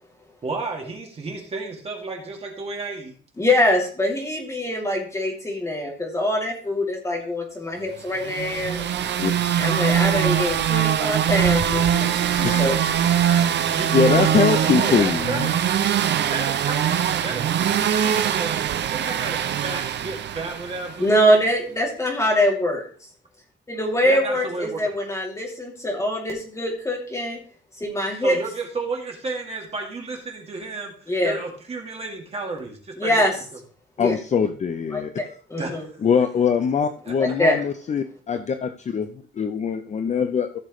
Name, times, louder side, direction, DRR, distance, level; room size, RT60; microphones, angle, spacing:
voice 1, 0.4-3.1 13.7-15.6 16.3-21.2 24.0-24.8 28.1-33.2 35.5-36.0 37.1-37.2, right 3 dB, 30° right, 0 dB, 2.3 m, -32 dB
voice 2, 3.4-8.8 9.6-12.8 21.0-22.8 23.7-27.4 27.8-28.4 31.1-31.4 33.0-33.3 34.0-34.1 34.9-35.2 35.5-35.8 37.2-37.6, left 1 dB, 15° left, -1 dB, 2.7 m, -23 dB
sound 1, 8.2-21.1, right 9 dB, 60° right, 0.7 m, -22 dB
voice 3, 9.2-9.6 12.4-12.8 13.9-15.5 34.0-35.2 36.0-39.1 39.4-40.6, left 6 dB, 35° left, 7 dB, 0.6 m, -22 dB
15.0 x 6.7 x 3.2 m, 0.43 s
wide cardioid pair, 175°, 20 cm